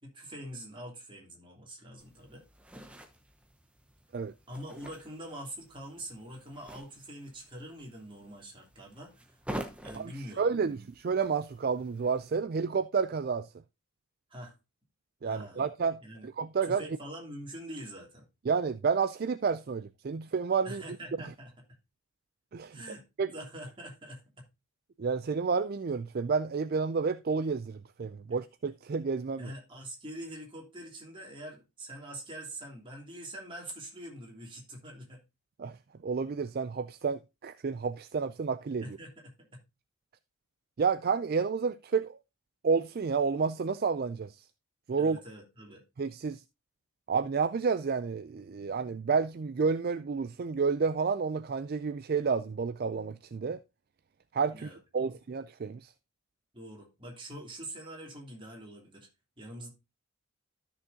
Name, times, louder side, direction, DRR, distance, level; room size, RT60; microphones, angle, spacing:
voice 1, 0.0-2.4 4.5-9.4 9.8-10.4 14.3-14.5 15.2-15.7 16.0-16.3 16.6-18.2 20.6-21.5 22.7-23.0 23.3-24.4 29.4-35.2 38.8-39.6 45.0-45.8 54.5-55.1 56.5-59.1 59.4-59.7, right 1 dB, 20° right, 3.1 m, -44 dB
sound 1, 2.0-12.4, right 1 dB, 5° right, 1.0 m, -47 dB
voice 2, 10.0-13.5 15.2-16.8 18.5-20.8 22.5-22.8 23.2-23.3 25.0-29.5 35.6-35.8 36.0-39.0 40.8-42.2 42.6-44.4 44.9-45.2 46.0-46.4 47.1-53.6 54.3-55.9, right 5 dB, 45° right, 0.3 m, -30 dB
13.0 x 6.4 x 2.7 m
head